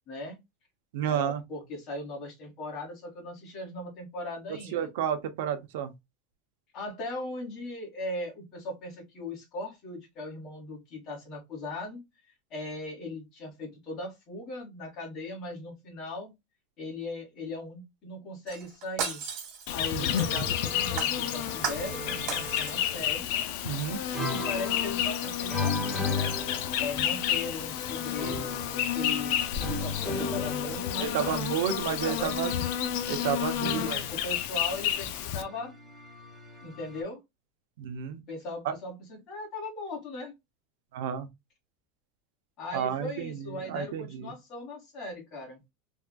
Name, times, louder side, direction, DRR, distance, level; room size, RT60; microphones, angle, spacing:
voice 1, 0.1-0.4 1.1-4.9 6.7-12.0 12.5-16.3 16.8-19.2 19.7-23.3 24.3-26.3 26.8-28.5 28.9-29.4 29.7-31.4 31.9-32.7 33.6-35.7 36.6-37.2 38.3-40.3 42.6-45.6, left 2 dB, 35° left, 1.7 m, -38 dB
voice 2, 0.9-1.4 4.7-5.9 19.9-20.5 23.6-24.0 31.0-32.5 33.1-34.0 37.8-38.2 38.6-38.7 40.9-41.3 42.7-44.3, right 9 dB, 70° right, 0.6 m, -31 dB
Shatter, 18.5-20.6 21.0-22.0 22.3-23.0 23.4-23.5, right 7 dB, 50° right, 1.4 m, -35 dB
Insect, 19.7-35.4, left 10 dB, 60° left, 0.4 m, -31 dB
sound 1, 20.1-23.3 24.1-27.3 28.2-31.6 33.6-37.0, left 2 dB, 5° right, 0.9 m, -37 dB
3.5 x 2.5 x 2.2 m
supercardioid pair, 160°, 0 cm